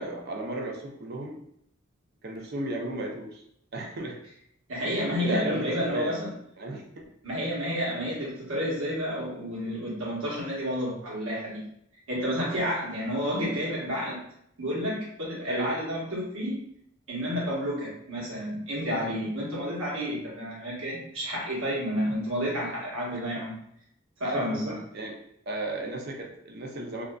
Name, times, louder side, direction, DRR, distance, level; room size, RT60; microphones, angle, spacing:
voice 1, 0.0-1.4 2.2-3.4 3.7-4.2 4.7-6.3 6.6-7.1 15.5-15.8 23.1-23.2 24.2-25.2 25.5-27.0, right 1 dB, 50° right, 0 dB, 0.4 m, -35 dB
voice 2, 4.7-6.3 7.2-11.7 12.1-14.2 14.6-16.6 17.1-23.6 24.2-24.7, equal, 80° right, -5 dB, 1.0 m, -30 dB
2.5 x 2.3 x 2.2 m, 0.72 s
head